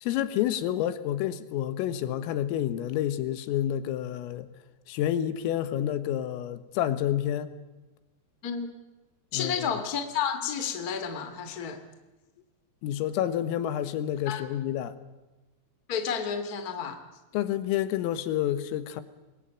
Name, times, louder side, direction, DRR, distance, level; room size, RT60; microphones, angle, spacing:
voice 1, 0.0-4.5 4.9-7.5 9.3-9.7 12.8-15.0 17.3-19.0, left 11 dB, 85° left, 4.0 m, -29 dB
voice 2, 8.4-8.8 9.3-11.8 14.2-14.4 15.9-17.0, left 7 dB, 35° left, 1.6 m, -31 dB
27.5 x 22.5 x 9.0 m
omnidirectional pair, 5.9 m